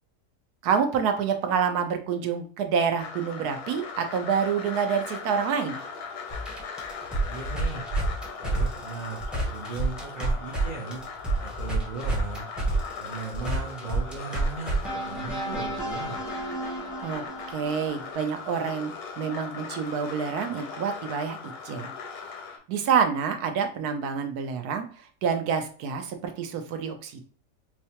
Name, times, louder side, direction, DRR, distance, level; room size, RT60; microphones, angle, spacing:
voice 1, 0.6-5.8 17.0-21.4 21.6-21.9 22.7-24.9 25.2-27.2, right 6 dB, 80° right, 6 dB, 1.1 m, -27 dB
sound 1, 3.0-22.6, left 5 dB, 75° left, 1.2 m, -39 dB
sound 2, 6.3-10.6 10.9-18.1, right 2 dB, ahead, 0.5 m, -30 dB
voice 2, 7.3-7.8 8.4-11.0 11.4-12.5 13.0-16.2, right 4 dB, 55° right, -3 dB, 0.5 m, -37 dB
4.6 x 2.1 x 2.8 m, 0.43 s
omnidirectional pair, 1.6 m